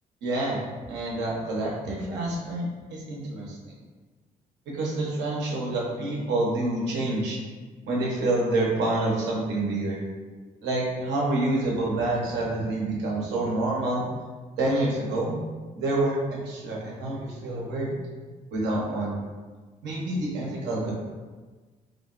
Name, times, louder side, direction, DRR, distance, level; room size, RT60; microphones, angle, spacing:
voice 1, 0.2-0.6 0.9-2.6 2.9-3.5 4.7-7.4 7.8-10.0 10.6-14.0 14.6-15.4 15.8-17.9 18.5-19.2 19.8-20.9, right 2 dB, 70° right, -3 dB, 0.9 m, -27 dB
3.6 x 2.0 x 2.4 m, 1.3 s
hypercardioid pair, 55°, 18 cm